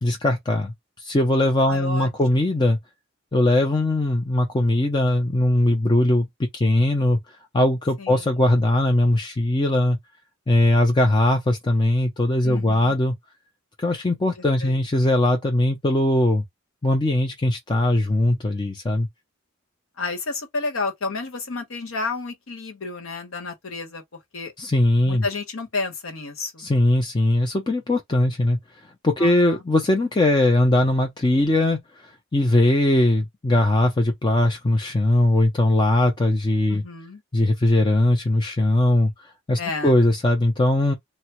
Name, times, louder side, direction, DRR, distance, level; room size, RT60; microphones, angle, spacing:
voice 1, 0.0-2.8 3.3-10.0 10.5-13.1 13.8-16.4 16.8-19.1 24.6-25.3 26.6-28.6 29.0-36.8 37.3-40.9, left 1 dB, 20° left, 0.5 m, -20 dB
voice 2, 1.7-2.1 8.0-8.2 12.4-13.0 14.4-14.8 20.0-24.0 24.3-24.5 25.1-26.6 29.2-29.6 36.7-37.2 39.6-39.9, left 3 dB, 75° left, 1.1 m, -31 dB
3.4 x 2.1 x 2.9 m
head